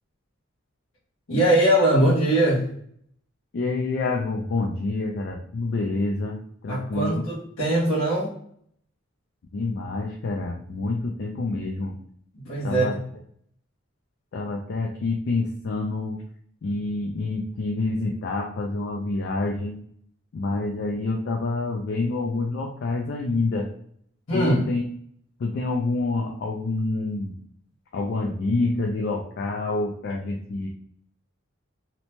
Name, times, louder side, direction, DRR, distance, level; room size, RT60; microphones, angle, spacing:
voice 1, 1.3-2.7 6.7-8.3 12.3-12.8 24.3-24.6, right 1 dB, 80° left, -8 dB, 0.9 m, -21 dB
voice 2, 3.5-6.4 6.6-7.2 9.5-12.0 12.6-12.9 14.3-16.2 16.6-19.7 20.3-23.7 24.3-24.8 25.4-27.3 27.9-30.7, left 3 dB, 55° left, 1 dB, 0.4 m, -27 dB
2.7 x 2.1 x 2.9 m, 0.65 s
head